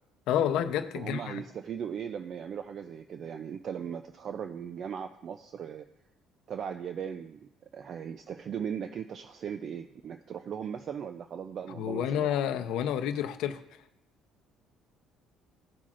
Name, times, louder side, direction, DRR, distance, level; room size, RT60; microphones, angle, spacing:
voice 1, 0.3-1.4 11.8-13.6, left 10 dB, 75° left, 8 dB, 0.6 m, -29 dB
voice 2, 0.9-5.8 6.5-12.3, right 8 dB, 45° right, 8 dB, 0.4 m, -38 dB
15.5 x 5.8 x 2.5 m, 0.85 s
cardioid pair, 135°, 0 cm